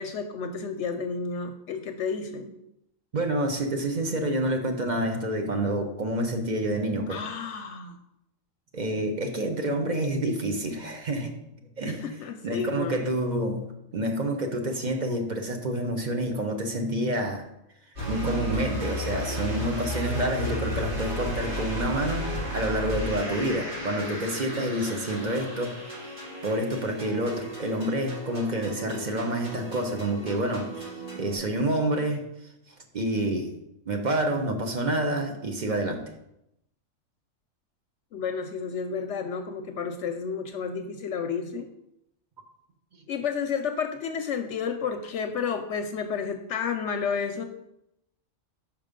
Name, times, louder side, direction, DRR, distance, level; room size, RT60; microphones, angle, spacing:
voice 1, 0.0-2.5 7.1-8.0 9.5-9.7 11.8-13.0 38.1-41.7 43.1-47.4, left 6 dB, 70° left, 6 dB, 0.8 m, -31 dB
voice 2, 3.1-7.2 8.7-11.3 11.8-12.1 12.4-13.6 13.9-17.4 18.1-25.8 26.4-30.9 31.1-32.2 32.9-33.5 33.9-36.0, right 1 dB, 40° right, 4 dB, 0.9 m, -28 dB
sound 1, 18.0-31.4, equal, 60° right, 2.8 m, -34 dB
5.9 x 5.2 x 5.1 m, 0.83 s
omnidirectional pair, 1.4 m